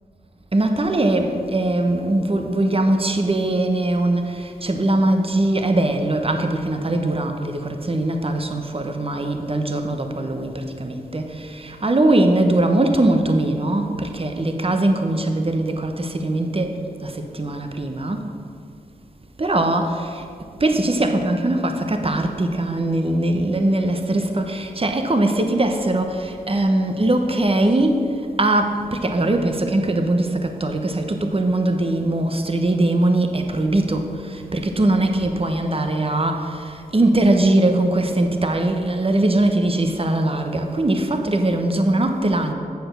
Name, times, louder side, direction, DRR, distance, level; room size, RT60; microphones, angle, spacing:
voice 1, 0.5-18.3 19.4-20.3 20.6-42.5, right 1 dB, 35° right, 5 dB, 1.0 m, -21 dB
8.1 x 6.8 x 6.6 m, 2.4 s
cardioid pair, 55°, 16 cm